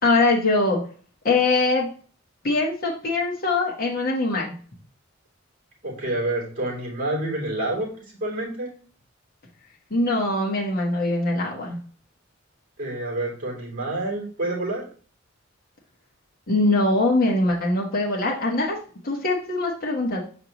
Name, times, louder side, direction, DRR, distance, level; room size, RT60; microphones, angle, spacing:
voice 1, 0.0-0.8 1.2-1.9 2.4-4.5 9.9-11.8 16.5-18.8 19.0-20.2, left 2 dB, 45° left, -2 dB, 1.2 m, -22 dB
voice 2, 5.8-7.9 8.2-8.7 12.8-14.8, right 2 dB, 40° right, -2 dB, 3.1 m, -28 dB
6.5 x 5.2 x 2.9 m, 0.42 s
head